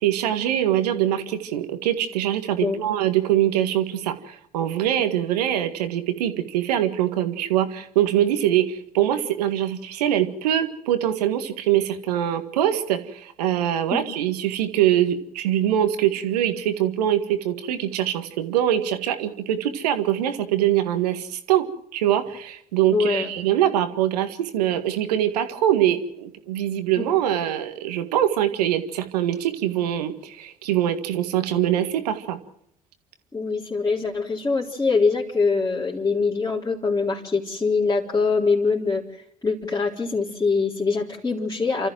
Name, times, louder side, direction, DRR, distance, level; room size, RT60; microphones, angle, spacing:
voice 1, 0.0-21.6 21.9-32.4, right 11 dB, 80° right, 9 dB, 1.8 m, -23 dB
voice 2, 22.9-23.3 27.0-27.1 33.3-41.9, left 4 dB, 15° left, -5 dB, 3.8 m, -23 dB
29.0 x 14.0 x 7.7 m, 0.72 s
hypercardioid pair, 55°, 20 cm